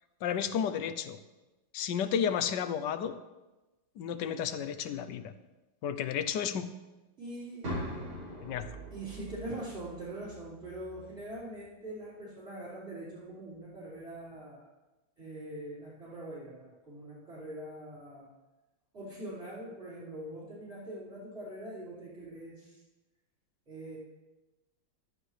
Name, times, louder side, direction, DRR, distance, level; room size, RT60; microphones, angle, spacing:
voice 1, 0.2-1.2 1.7-3.1 4.0-5.3 5.8-6.7 8.4-8.7, left 8 dB, 70° left, 11 dB, 1.2 m, -32 dB
voice 2, 7.2-7.7 8.9-14.7 15.2-18.3 18.9-22.8 23.7-24.0, right 1 dB, 35° right, -10 dB, 4.4 m, -43 dB
sound 1, 7.6-11.6, equal, 85° right, 4.4 m, -42 dB
15.0 x 12.0 x 3.3 m, 1.1 s
omnidirectional pair, 2.2 m